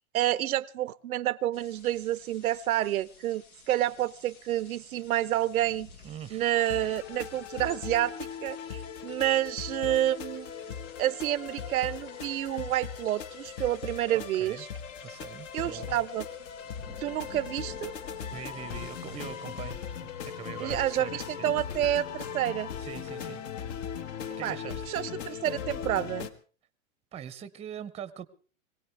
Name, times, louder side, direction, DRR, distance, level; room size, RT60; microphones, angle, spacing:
voice 1, 0.1-5.9 6.3-10.5 11.0-14.7 15.5-16.3 17.0-17.9 20.6-22.7 24.4-24.6 24.9-26.3, right 13 dB, 85° right, 17 dB, 0.7 m, -29 dB
sound 1, 1.5-19.7, left 5 dB, 85° left, 2.6 m, -52 dB
voice 2, 6.0-6.4 14.1-14.6 15.0-16.0 18.3-19.8 20.2-21.8 22.8-23.4 24.4-25.0 27.1-28.3, right 9 dB, 15° right, 15 dB, 0.7 m, -42 dB
sound 2, 6.5-26.3, left 7 dB, 60° left, 1.5 m, -39 dB
22.0 x 17.0 x 3.4 m, 0.39 s
hypercardioid pair, 125°, 42 cm